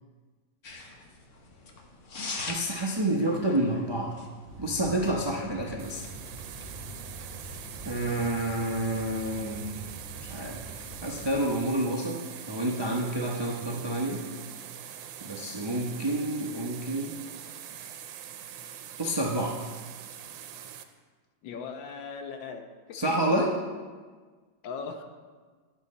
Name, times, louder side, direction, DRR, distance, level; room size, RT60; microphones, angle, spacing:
sound 1, 0.6-8.5, left 3 dB, 50° left, 1.1 m, -44 dB
voice 1, 2.2-4.2 4.6-6.1 7.9-9.9 10.2-14.2 15.2-17.1 19.0-19.6 22.9-23.6, right 1 dB, 40° right, -1 dB, 0.3 m, -29 dB
sound 2, 4.5-11.4, right 1 dB, 15° right, 1.7 m, -44 dB
sound 3, 5.8-20.8, right 9 dB, 85° right, 1.4 m, -43 dB
voice 2, 21.4-23.2 24.6-25.0, left 5 dB, 80° left, 5 dB, 1.5 m, -39 dB
10.5 x 7.6 x 4.2 m, 1.5 s
omnidirectional pair, 2.0 m